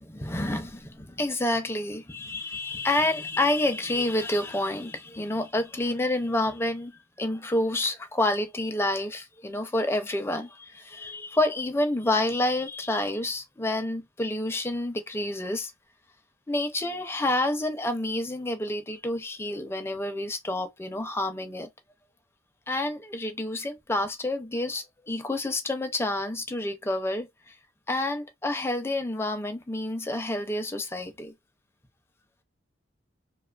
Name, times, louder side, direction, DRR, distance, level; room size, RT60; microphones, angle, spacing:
voice 1, 0.0-6.9 7.2-15.7 16.5-21.7 22.7-27.6 27.9-31.3, left 1 dB, 15° left, 0.4 m, -28 dB
2.7 x 2.2 x 2.3 m
head